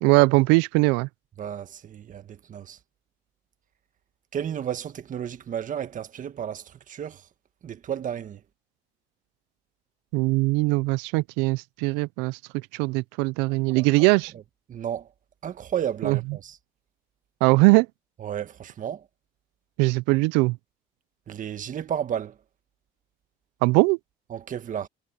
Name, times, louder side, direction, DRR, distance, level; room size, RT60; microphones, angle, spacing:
voice 1, 0.0-1.1 10.1-12.4 12.7-14.3 16.0-16.2 17.4-17.9 19.8-20.6 23.6-24.0, right 25 dB, 90° right, 0.4 m, -21 dB
voice 2, 1.4-2.8 4.3-7.3 7.6-8.4 13.7-14.1 14.3-14.4 14.7-15.1 15.4-16.6 18.2-19.1 21.3-22.4 24.3-24.9, right 9 dB, 45° right, 1.6 m, -33 dB
supercardioid pair, 85°, 18 cm